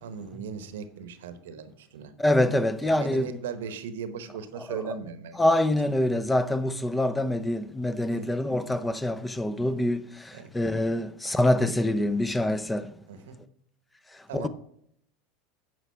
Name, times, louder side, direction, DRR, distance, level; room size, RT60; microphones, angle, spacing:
voice 1, 0.0-2.1 2.8-5.4 8.0-8.3 10.3-10.5 11.3-11.4 13.1-13.4 14.3-14.5, right 6 dB, 80° right, 0.9 m, -38 dB
voice 2, 2.2-3.3 4.7-4.8 5.4-10.0 10.5-12.9 14.3-14.5, left 1 dB, 10° left, 0.5 m, -25 dB
9.6 x 4.9 x 5.5 m
hypercardioid pair, 95°, 0 cm